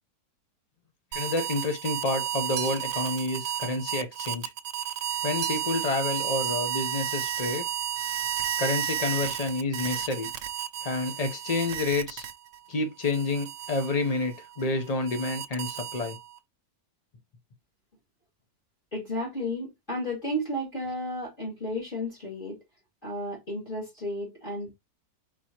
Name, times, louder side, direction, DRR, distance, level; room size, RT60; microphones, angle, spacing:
voice 1, 1.1-4.5 5.2-7.7 8.6-10.3 10.8-12.3 12.7-16.2, left 3 dB, 60° left, 0.4 m, -29 dB
sound 1, 1.1-12.6 13.0-16.4, right 11 dB, 90° right, 1.3 m, -32 dB
sound 2, 2.5-3.2 5.4-5.9 6.2-6.9, right 9 dB, 65° right, 1.1 m, -40 dB
voice 2, 18.9-22.6 23.0-24.7, equal, 30° left, 2.1 m, -33 dB
4.4 x 4.1 x 2.8 m
omnidirectional pair, 1.9 m